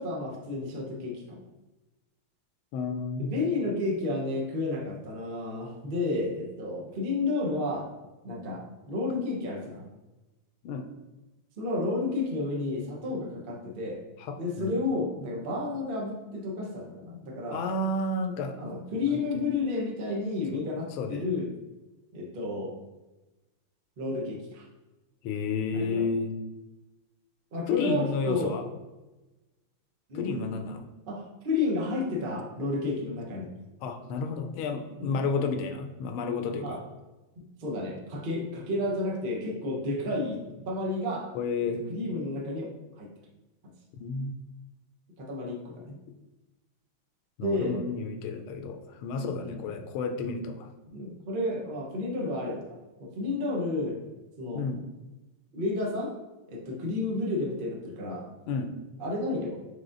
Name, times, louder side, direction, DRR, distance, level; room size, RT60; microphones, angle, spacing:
voice 1, 0.0-1.4 3.2-7.9 8.2-9.8 11.6-14.0 14.3-17.6 18.6-21.5 22.1-22.7 24.0-24.7 25.7-26.0 27.5-28.6 30.1-30.4 31.1-33.5 35.0-35.2 36.6-36.8 37.4-41.3 41.9-42.7 43.0-43.1 43.6-43.7 45.2-45.9 47.4-47.8 49.1-49.7 50.9-52.6 53.0-54.0 54.4-54.6 55.5-56.1 56.5-58.3 59.0-59.6, left 2 dB, 75° right, -2 dB, 0.5 m, -31 dB
voice 2, 2.7-3.3 10.6-10.9 14.2-14.8 17.5-18.6 19.0-19.3 20.5-20.7 21.0-21.4 25.2-26.4 27.7-28.7 30.1-30.8 33.8-36.8 41.3-41.8 44.0-44.4 47.4-50.7 54.5-54.8 58.5-58.8, left 4 dB, 80° left, 5 dB, 1.4 m, -31 dB
4.9 x 4.0 x 2.5 m, 1.1 s
omnidirectional pair, 2.3 m